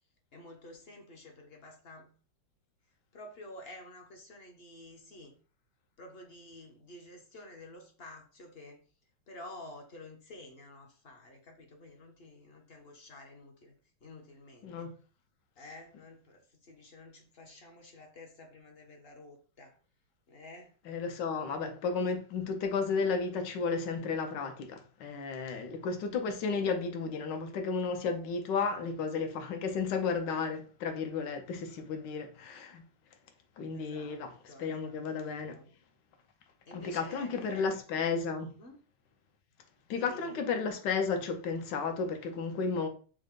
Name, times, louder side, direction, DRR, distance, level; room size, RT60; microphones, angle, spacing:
voice 1, 0.3-2.1 3.1-5.3 6.0-8.8 9.3-13.7 14.0-14.9 15.6-19.7 20.3-20.7 21.4-21.7 33.7-34.2 34.5-35.0 35.5-35.7 36.7-37.8 38.6-38.8 39.9-40.4, left 1 dB, 45° left, 0.8 m, -50 dB
voice 2, 20.9-32.8 33.6-34.3 34.6-35.5 36.7-38.5 39.9-42.9, left 5 dB, 70° left, 1.4 m, -33 dB
6.3 x 2.2 x 3.7 m
omnidirectional pair, 2.0 m